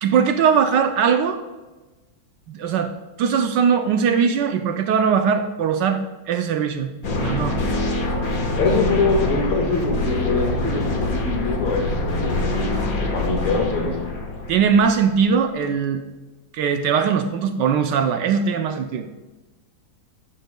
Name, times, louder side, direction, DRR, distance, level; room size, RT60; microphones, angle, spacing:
voice 1, 0.0-1.4 2.5-2.9 3.2-6.9 7.2-7.6 14.5-16.0 16.5-19.1, right 6 dB, 70° right, 7 dB, 1.1 m, -20 dB
sound 1, 7.0-15.2, left 2 dB, 45° left, 1.6 m, -25 dB
voice 2, 8.5-12.7 13.1-14.0, left 3 dB, 85° left, 1 dB, 2.5 m, -23 dB
11.5 x 9.2 x 2.2 m, 1.2 s
omnidirectional pair, 2.2 m